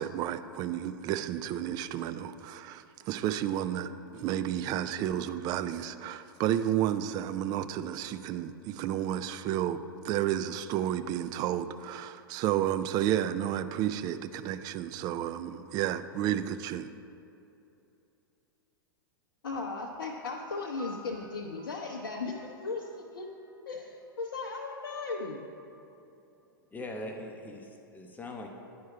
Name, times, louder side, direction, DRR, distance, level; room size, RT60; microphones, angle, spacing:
voice 1, 0.0-16.9, right 11 dB, 35° right, 12 dB, 0.3 m, -31 dB
voice 2, 19.4-23.3 23.7-25.4, left 3 dB, 75° left, -1 dB, 0.6 m, -37 dB
Piano, 19.5-24.3, equal, 10° right, 1.8 m, -53 dB
voice 3, 26.7-28.5, left 1 dB, 15° left, 2 dB, 0.7 m, -41 dB
10.0 x 4.7 x 4.6 m, 2.8 s
figure-of-eight pair, 100°, 12 cm